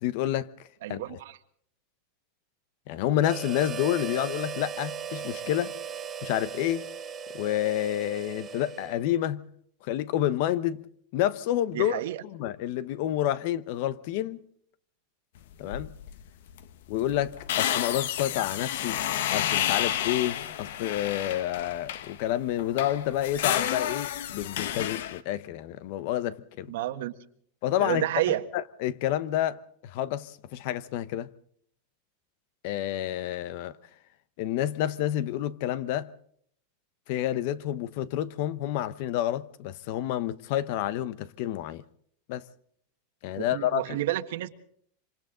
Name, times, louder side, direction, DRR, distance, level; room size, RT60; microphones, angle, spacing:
voice 1, 0.0-1.2 2.9-5.7 6.2-6.9 7.3-9.5 9.8-10.8 11.1-14.4 15.6-15.9 16.9-19.0 19.3-26.7 27.6-31.3 32.6-33.8 34.4-36.1 37.1-41.8 42.3-42.5 43.2-44.0, left 12 dB, 50° left, 0.9 m, -29 dB
voice 2, 0.8-1.4 11.7-12.2 26.7-27.1 27.8-28.4 43.4-44.5, right 14 dB, 70° right, 1.4 m, -30 dB
Harmonica, 3.2-9.2, right 7 dB, 15° right, 2.5 m, -38 dB
sound 1, 15.7-16.2 16.5-16.6 16.9-22.2 22.6-25.2, left 11 dB, 70° left, 1.2 m, -30 dB
26.5 x 25.5 x 3.8 m
supercardioid pair, 165°, 0 cm